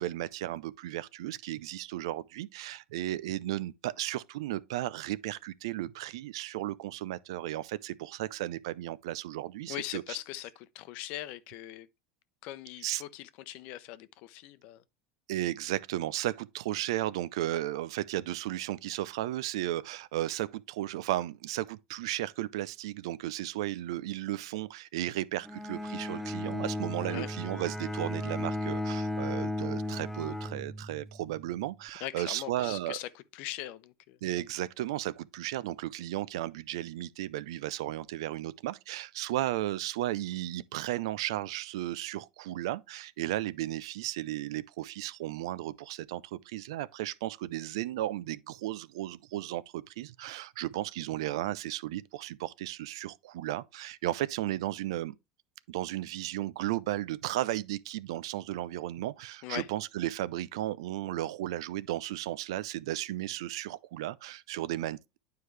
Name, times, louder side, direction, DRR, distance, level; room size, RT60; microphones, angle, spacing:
voice 1, 0.0-10.0 12.8-13.0 15.3-33.0 34.2-55.1 55.7-65.2, right 15 dB, 80° right, 0.5 m, -34 dB
voice 2, 9.7-11.9 12.4-14.8 26.9-27.3 32.0-34.2 59.4-59.7, left 15 dB, 60° left, 0.7 m, -41 dB
Bowed string instrument, 25.4-31.2, left 1 dB, ahead, 0.6 m, -35 dB
9.5 x 4.7 x 3.2 m
supercardioid pair, 110°, 3 cm